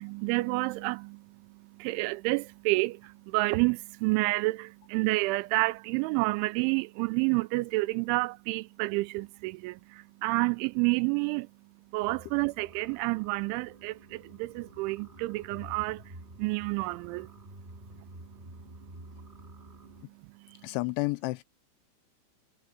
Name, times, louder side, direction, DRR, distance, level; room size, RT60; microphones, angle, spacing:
voice 1, 0.0-11.5 11.9-16.1 16.4-17.4 20.5-20.7, right 23 dB, 85° right, 2.9 m, -29 dB
sound 1, 12.0-20.0, right 1 dB, 20° right, 1.5 m, -50 dB
voice 2, 20.6-21.4, left 22 dB, 85° left, 2.9 m, -30 dB
omnidirectional pair, 5.5 m